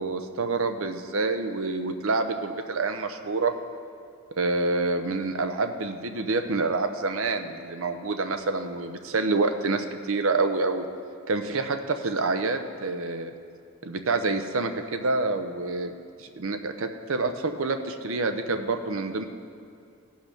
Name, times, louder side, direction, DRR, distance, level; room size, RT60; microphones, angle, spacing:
voice 1, 0.0-3.5 4.4-10.9 11.3-13.3 13.8-15.9 16.2-19.3, right 3 dB, 65° right, 7 dB, 0.7 m, -27 dB
16.5 x 5.7 x 5.8 m, 2.4 s
head